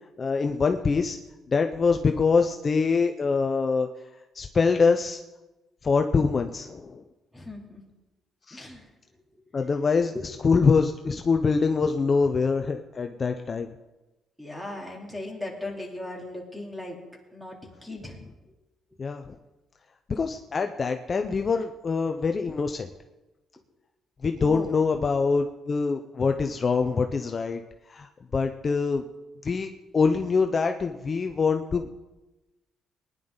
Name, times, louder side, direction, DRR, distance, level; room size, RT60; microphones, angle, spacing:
voice 1, 0.2-1.2 1.5-3.9 4.3-5.2 5.8-7.0 8.5-8.6 9.5-10.1 10.4-13.7 19.0-19.3 20.1-22.9 24.2-27.6 27.9-29.0 29.4-31.9, left 4 dB, 40° left, 6 dB, 0.7 m, -24 dB
voice 2, 7.3-7.8 8.5-8.9 9.5-9.6 10.1-10.3 14.4-17.0 17.3-18.2 24.4-24.7, left 2 dB, ahead, 0 dB, 3.4 m, -37 dB
20.0 x 10.5 x 4.0 m, 1.1 s
cardioid pair, 90°, 0 cm